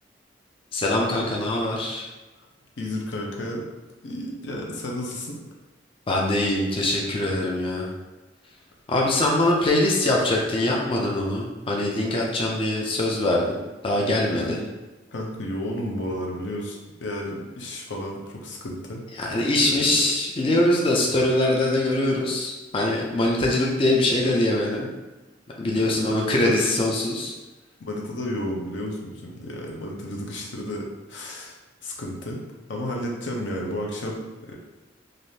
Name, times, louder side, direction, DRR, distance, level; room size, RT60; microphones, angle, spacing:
voice 1, 0.7-2.1 6.1-7.9 8.9-13.6 13.8-14.6 19.2-24.9 25.6-27.3, left 1 dB, 30° left, -2 dB, 0.4 m, -23 dB
voice 2, 2.8-3.6 4.0-5.4 14.3-14.6 15.1-19.0 19.7-20.1 25.8-26.6 27.8-32.4 32.7-34.6, left 1 dB, 70° left, -1 dB, 0.6 m, -32 dB
3.3 x 2.5 x 2.7 m, 1.1 s
head